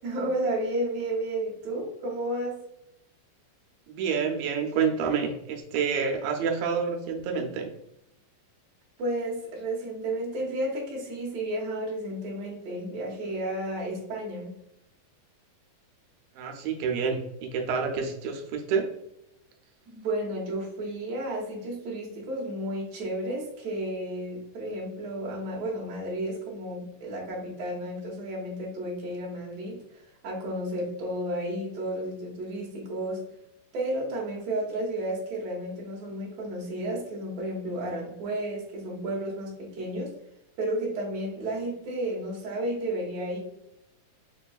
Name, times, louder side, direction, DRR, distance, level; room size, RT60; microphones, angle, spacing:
voice 1, 0.0-2.6 9.0-14.5 19.9-33.2 33.7-40.1 40.6-43.4, right 1 dB, 60° right, -4 dB, 2.0 m, -32 dB
voice 2, 3.9-7.7 16.4-18.9, right 6 dB, 85° right, 2 dB, 2.3 m, -28 dB
6.2 x 2.3 x 2.3 m, 0.81 s
omnidirectional pair, 3.9 m